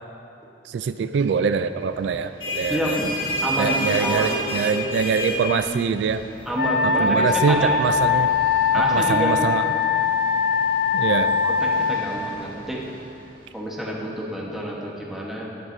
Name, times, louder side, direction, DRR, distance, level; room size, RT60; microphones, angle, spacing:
voice 1, 0.7-3.0 3.6-6.2 6.8-8.3 8.7-9.7 10.9-11.4, right 6 dB, 80° right, 11 dB, 0.3 m, -24 dB
sound 1, 2.1-13.5, equal, 30° left, 1.9 m, -32 dB
voice 2, 2.7-3.1 3.4-4.3 6.5-7.8 8.7-9.3 11.0-11.2 11.4-12.9 13.5-15.5, equal, ahead, -4 dB, 1.2 m, -28 dB
Wind instrument woodwind instrument, 6.5-12.1, left 6 dB, 65° left, 0.6 m, -21 dB
12.0 x 10.0 x 2.7 m, 2.7 s
head